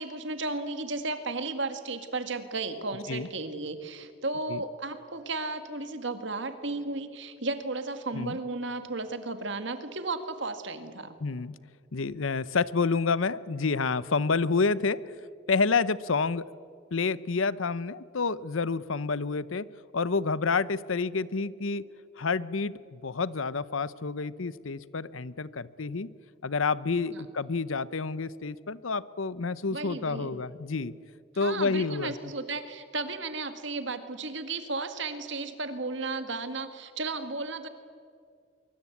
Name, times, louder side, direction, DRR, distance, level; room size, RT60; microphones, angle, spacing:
voice 1, 0.0-11.2 27.1-27.2 29.7-30.4 31.4-37.7, right 3 dB, 60° right, 9 dB, 1.9 m, -34 dB
voice 2, 11.2-11.5 11.9-15.2 15.5-16.5 16.9-19.7 19.9-21.8 22.2-26.1 26.4-30.9 31.4-32.1, left 4 dB, 75° left, 17 dB, 0.8 m, -29 dB
24.5 x 23.0 x 8.5 m, 2.3 s
head